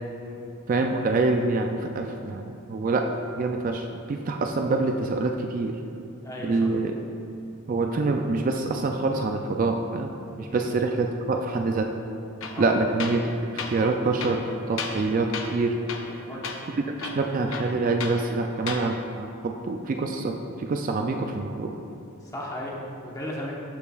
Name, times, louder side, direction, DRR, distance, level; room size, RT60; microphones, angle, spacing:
voice 1, 0.7-3.1 3.4-5.8 6.4-6.9 7.7-10.1 10.4-11.9 12.6-13.2 13.5-15.8 16.7-21.7, right 3 dB, 40° right, 4 dB, 0.3 m, -26 dB
voice 2, 6.2-6.7 10.5-10.7 12.5-12.7 16.1-16.4 22.2-23.5, left 1 dB, 15° left, -3 dB, 0.9 m, -36 dB
Tools, 12.4-12.6 13.0-13.3 13.6-13.8 14.2-15.1 15.3-15.6 15.9-16.2 16.4-16.6 17.0-18.2 18.6-18.9, left 5 dB, 65° left, 0.6 m, -34 dB
12.5 x 5.6 x 2.3 m, 2.6 s
head